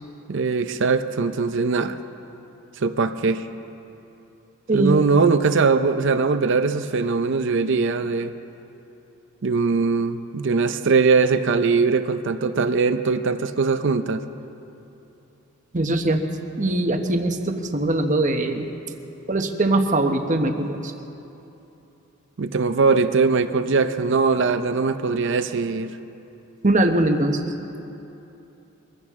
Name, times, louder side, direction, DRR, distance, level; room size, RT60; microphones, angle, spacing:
voice 1, 0.3-2.0 2.8-3.5 4.7-8.3 9.4-14.2 22.4-25.9, right 4 dB, 60° right, 10 dB, 0.6 m, -21 dB
voice 2, 4.7-5.0 15.7-16.2 16.6-18.7 19.3-20.9 26.6-27.4, right 2 dB, 35° right, 5 dB, 1.0 m, -21 dB
23.5 x 16.0 x 3.7 m, 2.9 s
head